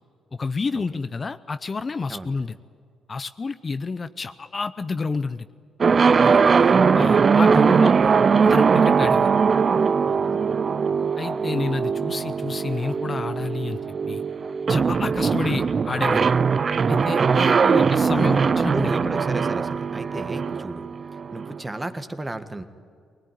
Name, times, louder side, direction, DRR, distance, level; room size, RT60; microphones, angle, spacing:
voice 1, 0.4-2.6 3.1-5.5 6.9-8.2 8.4-9.3 11.2-13.8 14.1-14.2 14.7-16.3 16.9-18.9, left 4 dB, 35° left, 12 dB, 0.6 m, -29 dB
sound 1, 5.8-21.6, right 5 dB, 40° right, 0.5 m, -20 dB
voice 2, 6.2-6.8 10.1-10.4 17.6-20.9 21.3-22.6, right 2 dB, 15° right, 9 dB, 1.5 m, -34 dB
20.5 x 20.5 x 9.4 m, 2.3 s
cardioid pair, 90°, 0 cm